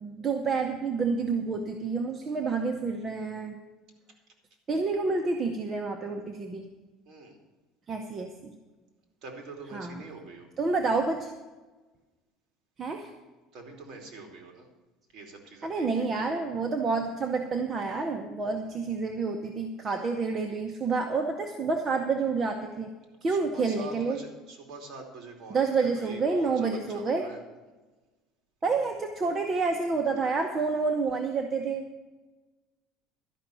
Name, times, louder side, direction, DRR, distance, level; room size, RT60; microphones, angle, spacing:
voice 1, 0.0-3.6 4.7-6.6 7.9-8.5 9.7-10.0 10.6-11.3 12.8-13.1 15.6-22.9 23.2-24.2 25.5-27.3 28.6-31.9, right 4 dB, 25° right, 4 dB, 0.9 m, -29 dB
voice 2, 7.1-7.4 9.2-10.5 13.0-13.2 13.5-14.7 15.1-16.3 17.9-18.1 18.6-18.9 23.3-27.4, right 3 dB, 45° right, 2 dB, 2.9 m, -45 dB
12.0 x 5.9 x 9.0 m, 1.2 s
cardioid pair, 150°, 0 cm